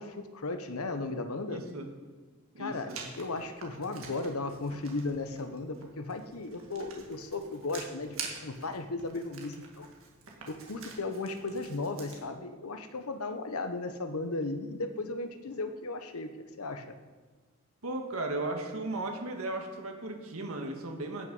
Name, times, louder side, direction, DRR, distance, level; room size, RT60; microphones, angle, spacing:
voice 1, 0.0-1.6 2.6-9.9 10.5-16.9, left 3 dB, 85° left, 9 dB, 1.0 m, -36 dB
voice 2, 1.5-1.9 2.5-3.0 17.8-21.3, right 2 dB, 80° right, 3 dB, 1.7 m, -36 dB
Writing, 2.9-12.2, right 5 dB, 65° right, 1.9 m, -47 dB
16.0 x 6.3 x 5.5 m, 1.4 s
head